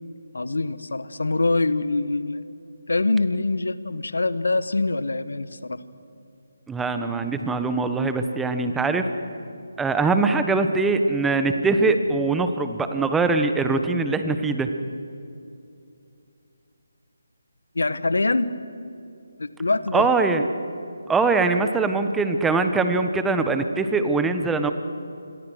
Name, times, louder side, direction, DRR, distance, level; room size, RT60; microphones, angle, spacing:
voice 1, 0.3-2.4 2.9-5.8 17.7-18.5 19.4-20.1, left 2 dB, 75° left, 15 dB, 1.3 m, -24 dB
voice 2, 6.7-9.0 9.8-14.7 19.9-20.5 21.1-24.7, right 3 dB, 5° right, 8 dB, 1.2 m, -22 dB
28.0 x 22.5 x 6.4 m, 2.6 s
figure-of-eight pair, 155°, 0 cm